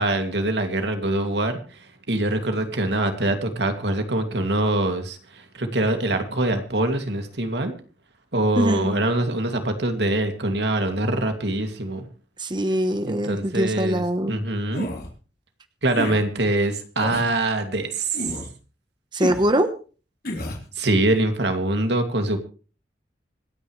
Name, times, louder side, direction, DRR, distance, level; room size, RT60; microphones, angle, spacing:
voice 1, 0.0-1.8 2.1-7.7 8.3-12.1 13.1-14.0 14.3-14.9 15.8-18.2 20.8-22.4, right 2 dB, 80° right, 6 dB, 2.5 m, -24 dB
voice 2, 8.6-9.0 12.4-14.4 19.1-19.7, right 1 dB, 25° right, 9 dB, 1.1 m, -23 dB
sound 1, 14.7-15.1 15.9-16.2 17.0-17.3 18.1-18.5 19.2-19.5 20.2-20.6, left 1 dB, 60° left, 4.0 m, -30 dB
26.5 x 9.7 x 3.3 m, 0.36 s
head